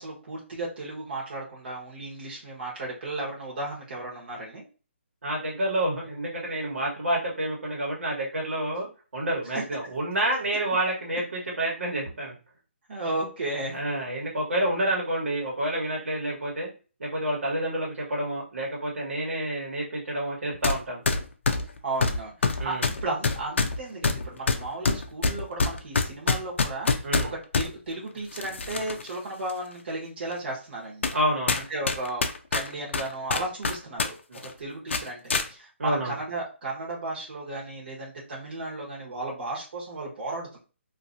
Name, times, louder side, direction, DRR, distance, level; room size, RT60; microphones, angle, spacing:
voice 1, 0.0-4.6 9.5-9.6 12.9-13.8 21.8-27.0 27.3-31.1 31.5-40.6, right 2 dB, 50° right, -4 dB, 1.2 m, -34 dB
voice 2, 5.2-8.9 9.1-12.3 13.7-16.7 17.0-21.0 22.6-22.9 27.0-27.3 31.1-31.6 34.3-34.4 35.8-36.1, right 1 dB, 85° right, -2 dB, 1.4 m, -28 dB
sound 1, 20.6-20.8 21.1-27.7 28.3-29.1 29.5-29.6 30.3-30.4 31.0-31.2 31.5-34.1 34.4-34.5 34.9-35.5, left 4 dB, 65° left, 0.4 m, -25 dB
2.8 x 2.6 x 2.6 m, 0.34 s
hypercardioid pair, 170°, 7 cm